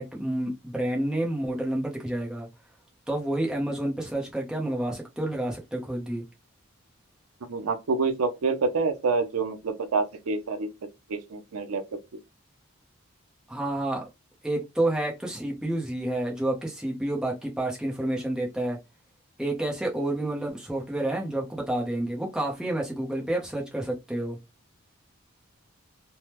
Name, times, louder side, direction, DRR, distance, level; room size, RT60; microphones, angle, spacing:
voice 1, 0.0-2.5 3.1-6.2 13.5-14.1 14.4-18.8 19.4-24.4, right 1 dB, 5° right, 0.6 m, -29 dB
voice 2, 7.5-10.7 11.1-11.8, right 4 dB, 75° right, 0.5 m, -27 dB
3.3 x 2.0 x 2.9 m
head